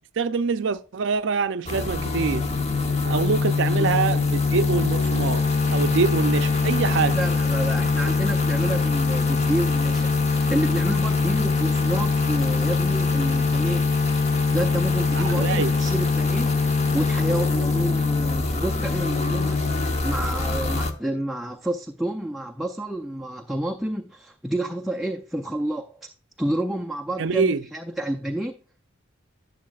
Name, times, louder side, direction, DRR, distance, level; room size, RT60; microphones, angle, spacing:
voice 1, 0.2-2.5 3.0-7.2 15.1-15.7 27.2-27.6, right 5 dB, 60° right, 0.5 m, -25 dB
sound 1, 1.7-20.9, left 4 dB, 30° left, 0.9 m, -23 dB
voice 2, 7.1-13.9 14.5-19.6 20.0-26.1 26.4-28.6, right 1 dB, ahead, 0.4 m, -29 dB
11.5 x 7.2 x 2.3 m
head